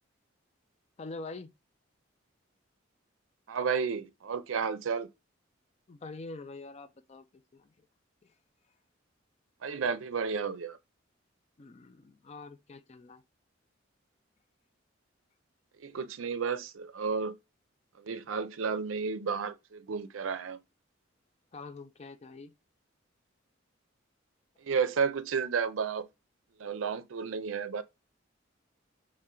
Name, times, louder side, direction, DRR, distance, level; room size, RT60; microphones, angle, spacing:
voice 1, 1.0-1.5 5.9-7.3 7.5-7.9 8.2-8.3 11.6-13.2 21.5-22.5, left 3 dB, 35° left, 0.4 m, -45 dB
voice 2, 3.5-5.1 9.6-10.8 15.8-17.4 18.0-20.6 24.6-26.1 26.6-27.8, right 6 dB, 85° right, 0.5 m, -32 dB
4.3 x 3.2 x 3.7 m
head